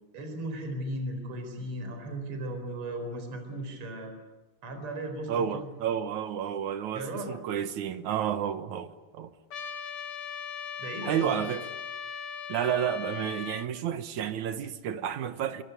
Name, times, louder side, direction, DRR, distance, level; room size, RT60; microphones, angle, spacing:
voice 1, 0.1-4.1 4.6-5.7 6.9-7.4 10.8-11.3, right 1 dB, 35° right, 4.9 m, -36 dB
voice 2, 5.3-9.3 11.0-11.7 12.5-15.6, right 9 dB, 65° right, 2.1 m, -31 dB
Trumpet, 9.5-13.7, left 7 dB, 50° left, 1.8 m, -39 dB
25.0 x 24.5 x 9.3 m
omnidirectional pair, 4.4 m